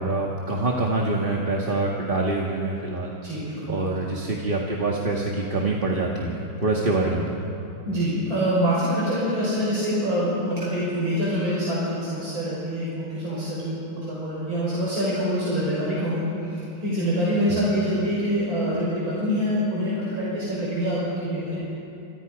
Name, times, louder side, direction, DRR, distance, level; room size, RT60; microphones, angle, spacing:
voice 1, 0.0-3.1 3.7-7.5 17.5-17.6, right 2 dB, 25° right, -2 dB, 1.9 m, -25 dB
voice 2, 3.2-3.8 7.8-21.6, equal, 80° right, -7 dB, 6.4 m, -25 dB
29.5 x 28.0 x 5.2 m, 2.8 s
omnidirectional pair, 2.2 m